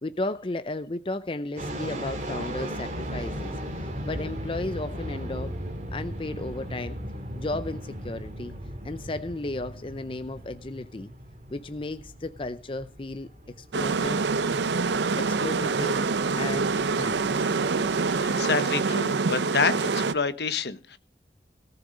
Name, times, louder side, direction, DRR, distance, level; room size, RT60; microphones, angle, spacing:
voice 1, 0.0-5.5 5.9-7.0 7.4-8.5 8.8-11.1 11.5-13.3 13.6-14.2 15.2-16.1 16.4-16.7 17.0-17.5, left 2 dB, 30° left, 0.6 m, -34 dB
sound 1, 1.6-18.3, equal, 45° right, 2.4 m, -37 dB
sound 2, 13.7-20.1, right 4 dB, 85° right, 0.6 m, -25 dB
voice 2, 18.1-21.0, left 4 dB, 70° left, 1.1 m, -28 dB
18.0 x 7.0 x 5.1 m
head